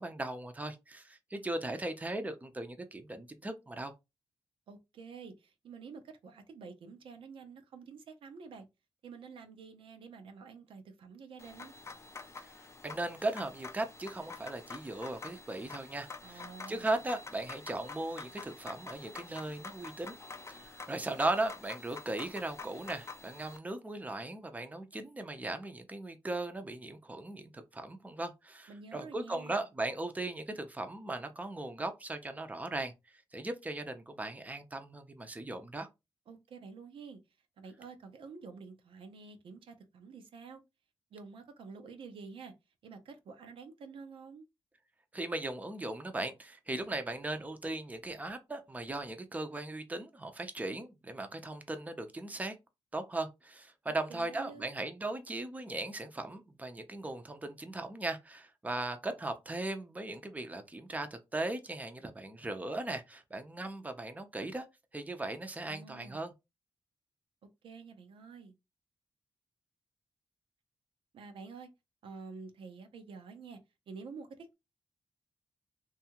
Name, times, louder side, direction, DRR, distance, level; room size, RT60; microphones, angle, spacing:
voice 1, 0.0-3.9 12.4-20.2 20.5-32.9 33.3-35.9 45.1-52.5 52.9-64.7 64.9-66.3, right 2 dB, 15° right, 0.6 m, -38 dB
voice 2, 4.7-8.6 9.0-11.7 16.2-16.9 28.7-29.6 36.3-37.2 37.6-40.6 41.1-42.5 42.8-44.4 53.9-54.7 65.7-66.3 67.6-68.5 71.1-71.7 72.0-73.6 73.9-74.5, right 5 dB, 75° right, 0.5 m, -49 dB
sound 1, 11.4-23.6, left 4 dB, 30° left, 0.4 m, -48 dB
2.6 x 2.4 x 2.8 m
cardioid pair, 60°, 9 cm